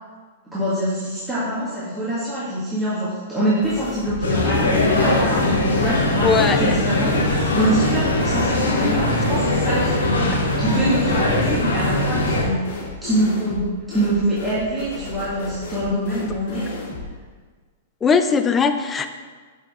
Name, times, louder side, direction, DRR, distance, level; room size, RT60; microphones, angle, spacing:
voice 1, 0.4-16.7, right 1 dB, 10° right, -10 dB, 1.9 m, -25 dB
sound 1, 3.6-4.3 4.5-17.1, left 3 dB, 55° left, 2.1 m, -35 dB
sound 2, 4.2-12.5, left 2 dB, 85° left, 1.7 m, -20 dB
voice 2, 6.2-6.6 18.0-19.1, left 5 dB, 20° left, 8 dB, 0.5 m, -19 dB
6.6 x 5.7 x 3.7 m, 1.4 s
hypercardioid pair, 110°, 0 cm